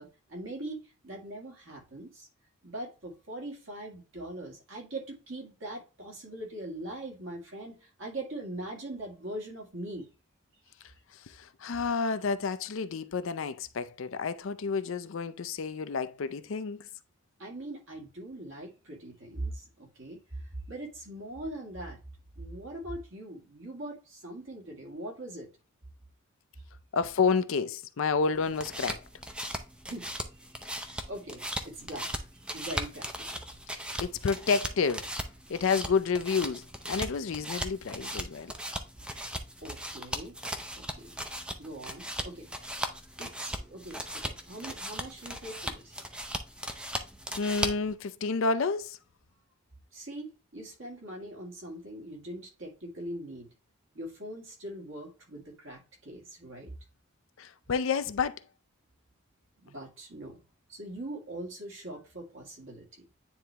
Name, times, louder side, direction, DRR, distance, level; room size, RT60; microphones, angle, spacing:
voice 1, 0.0-2.3 2.6-10.1 17.4-22.0 22.4-25.5 29.9-30.1 30.5-33.4 39.6-40.4 40.8-41.2 41.6-42.7 43.2-46.0 49.9-53.5 53.9-56.7 59.6-60.4 60.7-63.1, right 1 dB, 60° right, 2.1 m, -41 dB
voice 2, 11.1-16.9 26.9-29.0 33.7-35.1 35.5-38.5 47.4-49.0 57.4-58.4, left 5 dB, 65° left, 0.5 m, -30 dB
sound 1, 28.3-47.9, equal, 5° right, 0.5 m, -38 dB
9.5 x 3.4 x 2.9 m
head